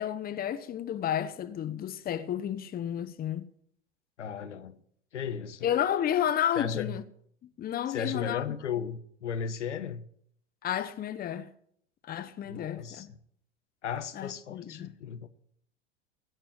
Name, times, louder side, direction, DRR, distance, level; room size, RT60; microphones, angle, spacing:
voice 1, 0.0-3.5 5.6-7.0 7.4-8.4 10.6-11.5 12.0-13.1 14.1-14.9, left 10 dB, 25° left, 0.9 m, -31 dB
voice 2, 4.2-4.8 5.1-5.7 6.6-6.9 7.9-10.0 12.4-13.2 13.8-15.3, left 7 dB, 85° left, 1.1 m, -35 dB
16.5 x 5.6 x 8.6 m
hypercardioid pair, 95°, 35 cm